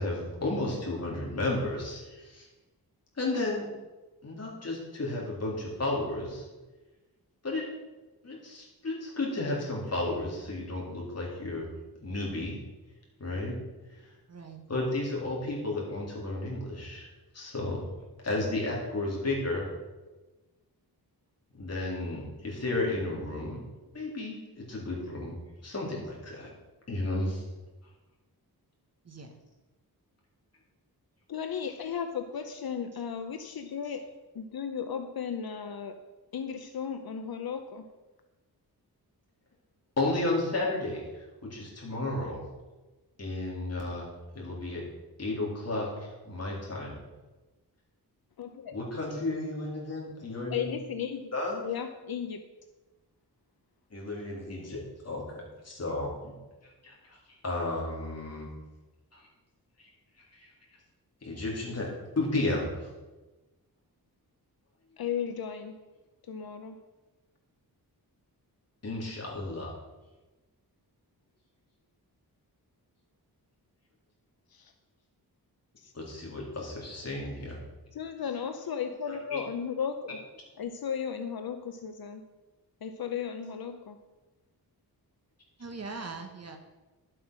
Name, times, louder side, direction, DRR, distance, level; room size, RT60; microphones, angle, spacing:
voice 1, 0.0-2.5 3.2-3.6 4.2-6.5 7.4-7.6 8.2-11.7 12.0-12.5 13.2-13.5 13.9-14.0 14.7-17.1 17.3-17.9 18.2-19.6 21.5-23.6 23.9-25.3 25.6-26.5 26.9-27.4 40.0-42.4 43.2-44.1 44.3-44.8 45.2-47.0 48.7-50.7 51.3-51.7 53.9-56.3 56.8-57.2 57.4-58.5 59.1-59.2 59.8-59.9 60.3-60.5 61.2-62.9 68.8-69.7 75.9-77.6 79.3-79.4, left 2 dB, 40° left, -3 dB, 3.5 m, -33 dB
voice 2, 14.3-14.8 29.0-29.3 85.6-86.6, right 4 dB, 40° right, 5 dB, 1.2 m, -41 dB
voice 3, 31.3-34.0 34.3-36.0 36.3-37.8 48.4-48.8 50.5-51.3 51.6-52.4 65.0-65.8 66.3-66.8 74.5-74.7 75.8-75.9 77.9-80.2 80.6-82.2 82.8-84.0, left 7 dB, 65° left, 7 dB, 0.8 m, -35 dB
11.5 x 7.9 x 6.2 m, 1.2 s
wide cardioid pair, 175°, 39 cm